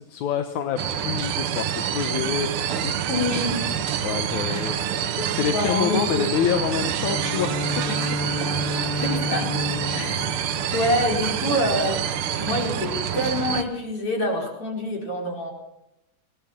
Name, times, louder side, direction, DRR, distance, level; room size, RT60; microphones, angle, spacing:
voice 1, 0.0-3.0 3.6-4.8 5.3-7.6, left 8 dB, 70° left, 7 dB, 2.5 m, -27 dB
sound 1, 0.8-13.6, right 8 dB, 60° right, 1.6 m, -28 dB
sound 2, 1.2-12.8, right 12 dB, 80° right, 2.3 m, -34 dB
voice 2, 3.1-3.7 4.3-4.7 5.2-6.2 7.9-8.0 8.5-8.6 8.9-9.6 9.9-15.5, left 1 dB, 45° left, 1 dB, 5.5 m, -27 dB
Bowed string instrument, 6.9-11.6, left 2 dB, 10° left, 1.4 m, -31 dB
21.5 x 18.0 x 7.3 m, 0.85 s
omnidirectional pair, 3.6 m